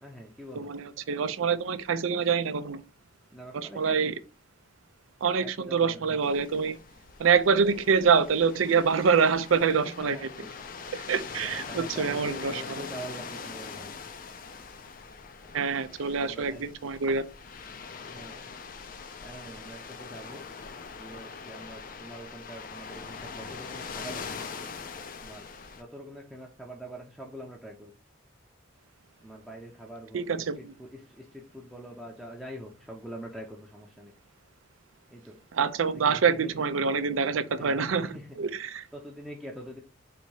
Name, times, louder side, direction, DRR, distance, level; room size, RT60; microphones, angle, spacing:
voice 1, 0.0-0.7 3.3-4.2 5.4-6.2 9.8-10.5 11.3-13.9 16.1-16.7 18.0-18.5 19.2-20.4 20.9-24.3 25.2-25.5 25.8-27.9 29.2-30.4 30.8-34.1 35.1-35.4 35.9-36.5 37.6-38.4 38.9-39.8, right 1 dB, ahead, 0.6 m, -44 dB
voice 2, 0.6-2.8 3.5-4.1 5.2-6.8 7.2-10.2 10.9-12.8 15.5-17.2 30.1-30.7 35.5-38.9, right 5 dB, 85° right, 0.5 m, -26 dB
sound 1, 6.2-25.8, left 5 dB, 45° left, 0.4 m, -42 dB
4.1 x 2.8 x 4.6 m
head